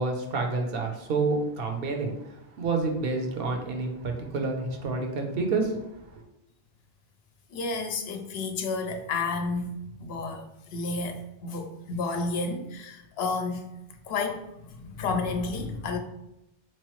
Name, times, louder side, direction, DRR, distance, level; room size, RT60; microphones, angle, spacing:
voice 1, 0.0-6.2, right 3 dB, 65° right, 3 dB, 0.8 m, -29 dB
voice 2, 7.5-9.7 10.0-13.7 14.0-16.0, left 3 dB, 80° left, 5 dB, 0.8 m, -31 dB
3.6 x 3.0 x 3.1 m, 0.86 s
omnidirectional pair, 1.0 m